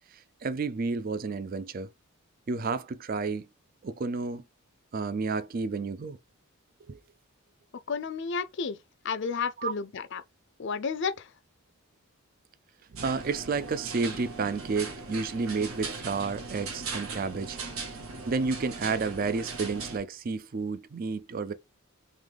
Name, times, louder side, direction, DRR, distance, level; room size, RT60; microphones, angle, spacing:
voice 1, 0.1-1.9 2.5-3.5 3.8-4.5 4.9-6.2 6.9-7.0 9.6-9.7 12.9-17.6 18.3-21.5, right 4 dB, 40° right, 0.4 m, -31 dB
voice 2, 7.9-8.8 9.0-10.2 10.6-11.3, left 5 dB, 55° left, 0.4 m, -31 dB
sound 1, 13.0-20.0, right 4 dB, 75° right, 1.3 m, -39 dB
3.7 x 3.1 x 3.4 m
head